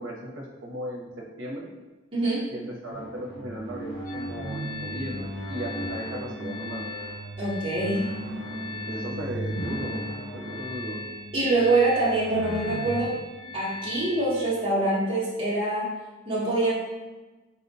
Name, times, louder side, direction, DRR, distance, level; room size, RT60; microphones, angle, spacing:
voice 1, 0.0-1.7 2.5-6.9 8.9-10.0 10.3-11.0, right 1 dB, 65° right, -2 dB, 0.7 m, -36 dB
voice 2, 2.1-2.5 7.4-8.0 11.3-13.2 13.5-15.9 16.3-16.7, right 2 dB, 25° right, -10 dB, 0.8 m, -24 dB
sound 1, 2.9-14.6, equal, 60° left, 0.7 m, -37 dB
sound 2, 4.0-14.5, left 3 dB, 45° left, 1.2 m, -40 dB
4.2 x 2.1 x 2.6 m, 1.2 s
head